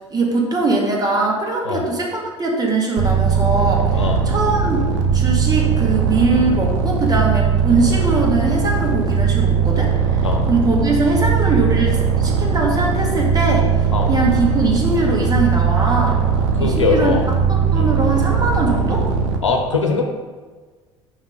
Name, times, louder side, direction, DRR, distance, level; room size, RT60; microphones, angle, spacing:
voice 1, 0.1-4.9 5.1-13.7 14.1-16.2 16.6-17.2 17.5-19.1, right 3 dB, 25° right, -1 dB, 1.8 m, -21 dB
sound 1, 3.0-19.4, right 6 dB, 65° right, 0.9 m, -19 dB
voice 2, 16.5-17.2 17.7-17.9 19.4-20.1, left 4 dB, 90° left, 3 dB, 0.8 m, -21 dB
5.9 x 4.9 x 5.0 m, 1.4 s
figure-of-eight pair, 65°, 15 cm